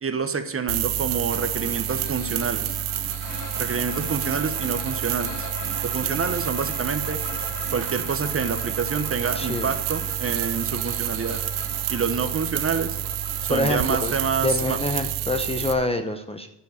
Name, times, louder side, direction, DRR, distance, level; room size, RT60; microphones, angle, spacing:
voice 1, 0.0-2.7 3.6-5.3 5.8-7.2 7.7-11.4 11.9-13.0 13.5-14.8, right 5 dB, 25° right, 9 dB, 1.1 m, -27 dB
sound 1, 0.7-15.7, right 11 dB, 85° right, 1.1 m, -29 dB
sound 2, 1.3-13.7, left 2 dB, 35° left, 3.1 m, -39 dB
voice 2, 9.3-9.7 13.5-14.1 14.4-16.5, left 2 dB, 10° left, 7 dB, 0.8 m, -26 dB
10.5 x 7.2 x 6.6 m, 0.89 s
cardioid pair, 100°, 50 cm